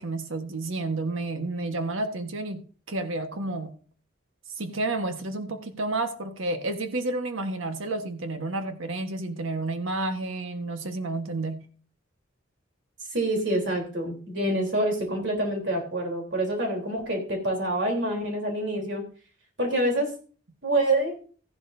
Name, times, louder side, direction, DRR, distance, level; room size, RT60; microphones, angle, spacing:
voice 1, 0.0-3.7 4.6-11.7, right 2 dB, 80° right, 6 dB, 1.4 m, -30 dB
voice 2, 13.1-19.0 19.6-20.1 20.6-21.1, right 1 dB, 60° right, 2 dB, 3.6 m, -26 dB
14.5 x 11.0 x 2.7 m, 0.41 s
head